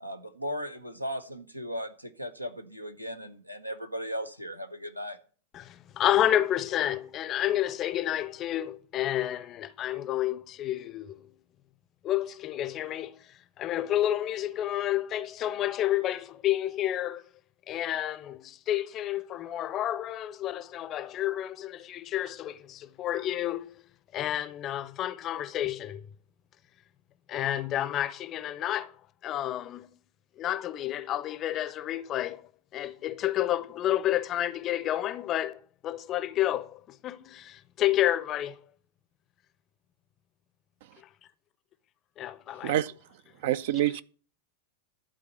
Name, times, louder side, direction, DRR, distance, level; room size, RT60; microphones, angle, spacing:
voice 1, 0.0-5.2, equal, 90° right, 0.8 m, -37 dB
voice 2, 5.5-11.3 12.0-13.1 13.6-17.2 17.7-23.8 24.1-26.1 27.3-28.9 29.2-29.9 30.4-32.4 32.7-38.6 42.2-42.7, left 12 dB, 30° left, 0.6 m, -30 dB
voice 3, 42.6-42.9 43.4-44.0, right 13 dB, 55° right, 0.4 m, -27 dB
11.5 x 4.0 x 8.0 m
figure-of-eight pair, 90°, 0 cm